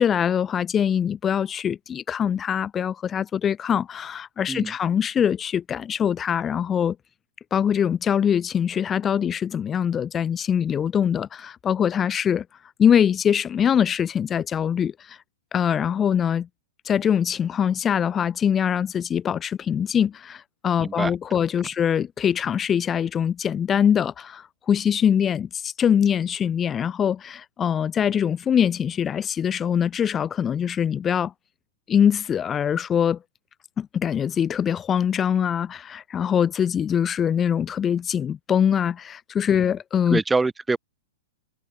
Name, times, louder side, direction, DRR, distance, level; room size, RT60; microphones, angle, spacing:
voice 1, 0.0-7.0 7.5-12.4 12.8-15.2 15.5-16.5 16.9-31.3 31.9-33.2 33.8-40.2, left 8 dB, 20° left, 1.9 m, -23 dB
voice 2, 20.8-21.1 40.1-40.8, right 3 dB, 10° right, 2.6 m, -24 dB
hypercardioid pair, 110°, 0 cm